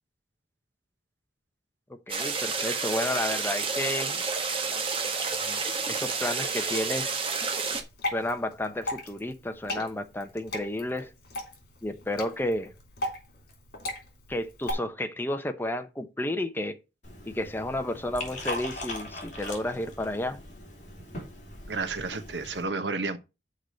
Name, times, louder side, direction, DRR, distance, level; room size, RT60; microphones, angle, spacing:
voice 1, 2.1-4.2 5.4-5.6 5.9-7.1 8.1-11.1 11.8-12.7 14.3-16.8 17.3-20.4, left 1 dB, 10° left, 0.9 m, -31 dB
sound 1, 2.1-7.8, right 4 dB, 30° right, 1.3 m, -30 dB
Water / Drip, 7.7-14.7, left 1 dB, 60° left, 3.3 m, -37 dB
Liquid, 17.0-22.6, left 1 dB, 45° left, 3.1 m, -40 dB
voice 2, 21.7-23.2, right 3 dB, 85° right, 1.1 m, -31 dB
6.6 x 4.8 x 6.4 m
head